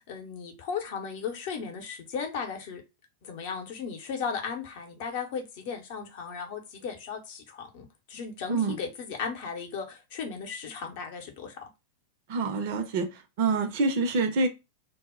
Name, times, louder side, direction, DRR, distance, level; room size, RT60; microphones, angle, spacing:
voice 1, 0.1-2.8 3.2-11.6, left 6 dB, 50° left, 0.7 m, -36 dB
voice 2, 12.3-13.1 13.4-14.5, right 3 dB, 50° right, 0.5 m, -26 dB
2.0 x 2.0 x 3.5 m
figure-of-eight pair, 90°, 0 cm